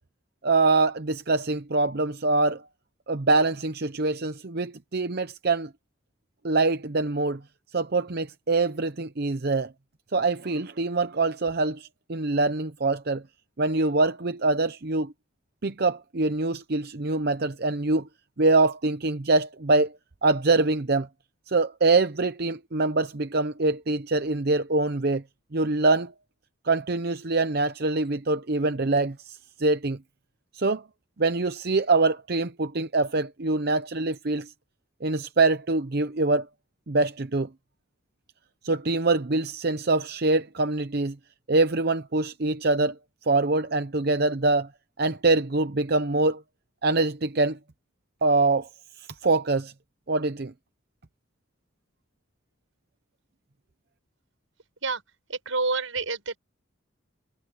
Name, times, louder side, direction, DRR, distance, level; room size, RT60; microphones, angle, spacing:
voice 1, 0.4-2.6 3.1-5.7 6.4-7.4 7.7-9.7 10.1-13.2 13.6-15.1 15.6-18.1 18.4-19.9 20.2-21.1 21.5-25.2 25.5-26.1 26.6-30.0 30.6-30.8 31.2-34.5 35.0-36.5 36.9-37.5 38.6-41.1 41.5-42.9 43.3-44.7 45.0-46.4 46.8-47.6 48.2-48.7 49.2-49.7 50.1-50.5, right 3 dB, 50° right, 0.8 m, -24 dB
voice 2, 55.3-56.4, right 3 dB, 85° right, 6.0 m, -28 dB
head